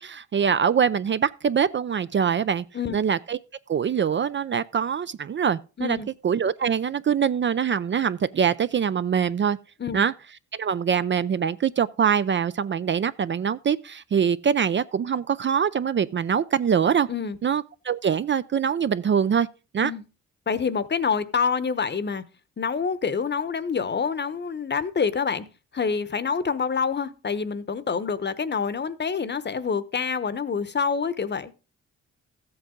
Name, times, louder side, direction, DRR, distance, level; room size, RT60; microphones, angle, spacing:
voice 1, 0.0-2.6 2.9-3.4 3.7-6.0 6.2-9.6 9.9-10.1 10.5-17.1 17.4-19.5 19.7-19.9, right 7 dB, 35° right, 0.5 m, -23 dB
voice 2, 5.8-6.1 9.8-10.0 17.1-17.4 19.8-20.0 20.5-22.2 22.6-25.4 25.7-31.5, left 6 dB, 35° left, 0.9 m, -27 dB
14.0 x 7.9 x 3.8 m
cardioid pair, 80°, 32 cm